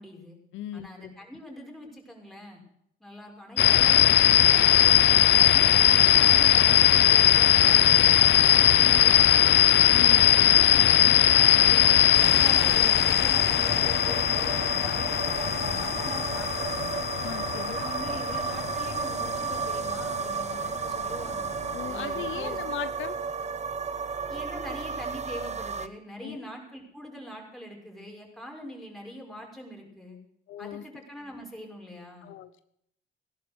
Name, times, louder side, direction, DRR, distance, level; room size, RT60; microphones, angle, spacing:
voice 1, 0.0-0.4 0.7-2.6 3.0-4.6 5.0-9.8 11.3-16.9 17.5-21.5 21.8-22.6 24.3-30.2 30.6-32.3, equal, ahead, -1 dB, 6.1 m, -43 dB
voice 2, 0.5-0.9 9.9-11.2 11.9-12.0 17.2-17.7 21.7-23.2 26.2-26.4 30.5-30.8 32.2-32.6, left 12 dB, 80° left, 11 dB, 0.9 m, -38 dB
sound 1, 3.6-20.2, left 11 dB, 60° left, 0.6 m, -20 dB
sound 2, 11.0-13.7, right 4 dB, 60° right, 4.3 m, -50 dB
sound 3, 12.1-25.9, right 5 dB, 35° right, 1.1 m, -33 dB
17.0 x 11.5 x 6.3 m, 0.74 s
cardioid pair, 90°, 20 cm